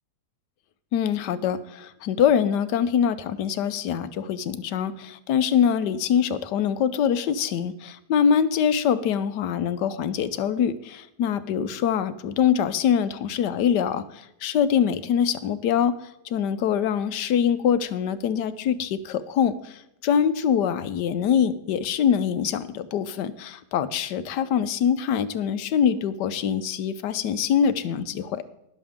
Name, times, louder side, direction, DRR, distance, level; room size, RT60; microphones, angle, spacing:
voice 1, 0.9-28.4, left 8 dB, 80° left, 13 dB, 1.3 m, -24 dB
19.5 x 7.0 x 3.6 m, 0.84 s
omnidirectional pair, 1.8 m